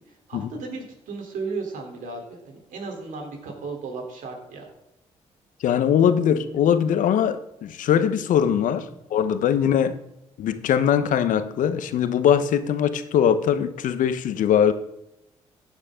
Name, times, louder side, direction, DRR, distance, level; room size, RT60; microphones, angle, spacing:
voice 1, 0.0-4.7 8.9-9.0, right 4 dB, 70° right, 3.5 m, -35 dB
voice 2, 5.6-10.0 10.4-14.7, left 8 dB, 70° left, 1.0 m, -21 dB
15.5 x 9.6 x 3.8 m
hypercardioid pair, 50°, 14 cm